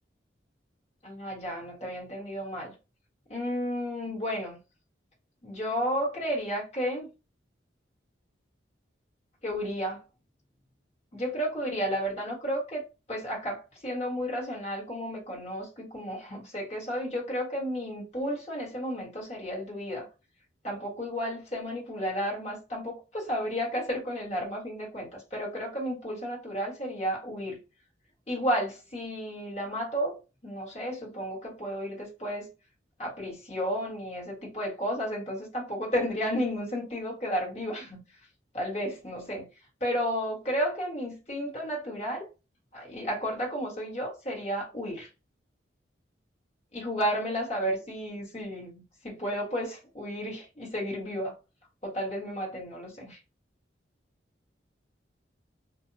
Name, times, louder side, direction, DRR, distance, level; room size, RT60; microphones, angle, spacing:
voice 1, 1.0-2.7 3.3-4.6 5.4-7.1 9.4-10.0 11.1-12.8 13.1-20.1 20.6-27.6 28.3-30.2 30.4-32.5 33.0-38.0 38.5-39.5 39.8-42.3 42.7-45.1 46.7-51.3 51.8-53.2, equal, 35° left, 1.3 m, -32 dB
2.6 x 2.1 x 2.6 m
head